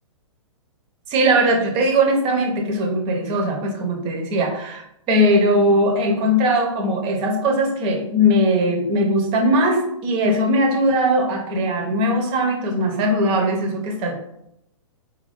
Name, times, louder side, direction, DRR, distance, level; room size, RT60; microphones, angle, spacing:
voice 1, 1.1-14.1, equal, 30° right, 2 dB, 0.9 m, -20 dB
4.4 x 2.7 x 3.5 m, 0.79 s
hypercardioid pair, 130°, 17 cm